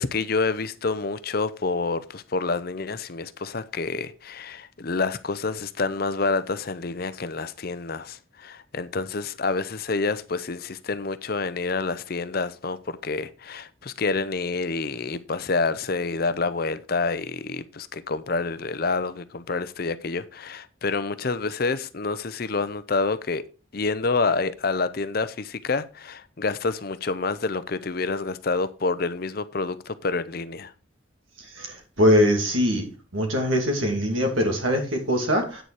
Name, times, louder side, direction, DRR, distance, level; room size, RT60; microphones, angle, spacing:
voice 1, 0.0-23.4 23.7-30.7, left 3 dB, 50° left, 0.6 m, -28 dB
voice 2, 31.5-32.8 33.1-35.6, equal, 80° right, 2.5 m, -22 dB
8.9 x 6.8 x 4.7 m
head